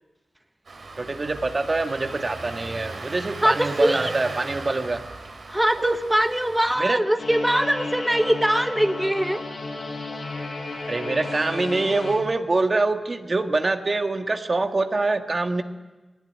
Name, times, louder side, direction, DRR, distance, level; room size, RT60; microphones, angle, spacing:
Engine starting, 0.7-6.7, right 3 dB, 70° right, 3.8 m, -37 dB
voice 1, 1.0-5.0 5.8-6.0 6.8-7.0 10.9-15.6, right 3 dB, 50° right, 6 dB, 1.7 m, -24 dB
voice 2, 3.4-4.1 5.5-9.4, right 1 dB, 10° right, 7 dB, 1.1 m, -22 dB
sound 1, 7.2-12.2, left 2 dB, 80° left, 5.5 m, -33 dB
19.5 x 19.0 x 9.5 m, 1.2 s
cardioid pair, 50°, 0 cm